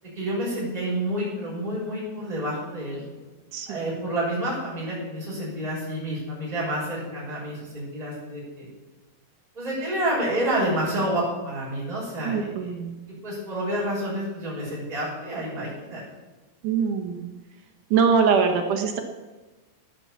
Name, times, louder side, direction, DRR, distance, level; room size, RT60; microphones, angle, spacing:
voice 1, 0.0-3.0 3.7-8.6 9.5-12.7 13.2-16.0, right 1 dB, 10° right, -7 dB, 6.3 m, -29 dB
voice 2, 3.5-4.1 12.2-12.9 16.6-17.3 17.9-19.0, right 6 dB, 65° right, 3 dB, 2.5 m, -23 dB
18.5 x 7.0 x 7.2 m, 1.2 s
omnidirectional pair, 4.4 m